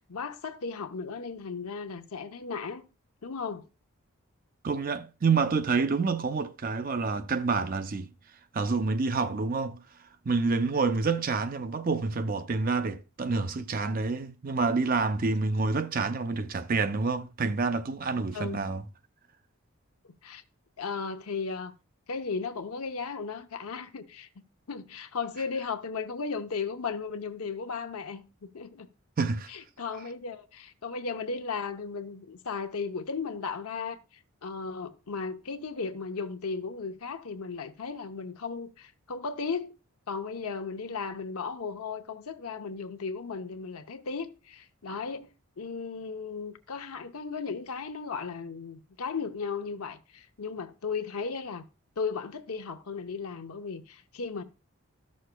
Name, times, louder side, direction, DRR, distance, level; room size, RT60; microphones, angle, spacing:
voice 1, 0.1-2.8 3.2-3.6 18.3-18.6 20.2-20.4 20.8-21.7 22.1-24.3 24.7-28.2 28.5-28.9 29.5-34.0 34.4-39.8 40.1-45.3 45.6-51.7 52.0-54.4, left 5 dB, 80° left, 0.8 m, -35 dB
voice 2, 4.6-8.1 8.5-9.8 10.3-18.8 29.2-29.5, right 4 dB, 40° right, 0.4 m, -28 dB
13.5 x 6.4 x 2.2 m
head